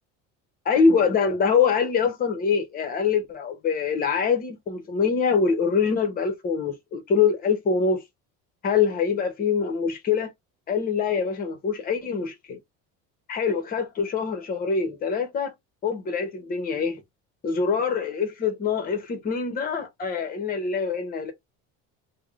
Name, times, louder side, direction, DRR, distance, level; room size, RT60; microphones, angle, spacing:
voice 1, 0.6-8.0 8.6-10.3 10.7-12.6 13.3-15.5 15.8-17.0 17.4-21.3, left 5 dB, 30° left, 0.8 m, -24 dB
3.4 x 2.1 x 3.5 m
cardioid pair, 165°, 31 cm